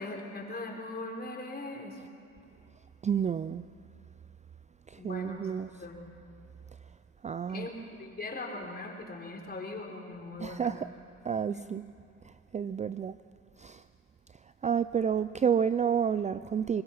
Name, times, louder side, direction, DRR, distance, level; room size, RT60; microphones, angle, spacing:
voice 1, 0.0-2.0 5.0-5.5 5.8-6.2 7.5-7.7 8.0-10.8 11.5-11.6, left 2 dB, 30° left, 1 dB, 4.3 m, -40 dB
voice 2, 3.0-3.7 4.9-5.7 7.2-7.7 10.4-10.9 11.2-11.8 12.2-13.2 13.6-13.8 14.6-16.8, right 7 dB, 25° right, 14 dB, 0.4 m, -30 dB
24.5 x 20.0 x 5.7 m, 2.4 s
supercardioid pair, 75°, 31 cm